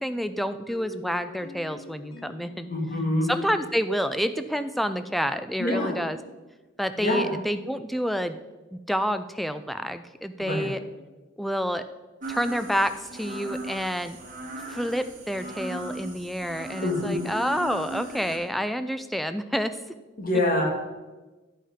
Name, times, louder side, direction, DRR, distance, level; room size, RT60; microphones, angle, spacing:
voice 1, 0.0-2.7 3.2-6.2 6.8-8.4 8.7-10.8 11.4-11.8 12.3-14.2 14.7-19.8, equal, ahead, 10 dB, 0.3 m, -28 dB
sound 1, 0.7-5.4, left 5 dB, 85° left, 1.5 m, -45 dB
voice 2, 2.7-3.3 5.6-5.9 7.0-7.3 10.4-10.7 16.8-17.2 20.2-20.7, left 1 dB, 45° left, 0 dB, 1.8 m, -25 dB
sound 2, 12.2-18.4, right 1 dB, 40° right, 1.8 m, -38 dB
10.0 x 5.5 x 4.9 m, 1.2 s
head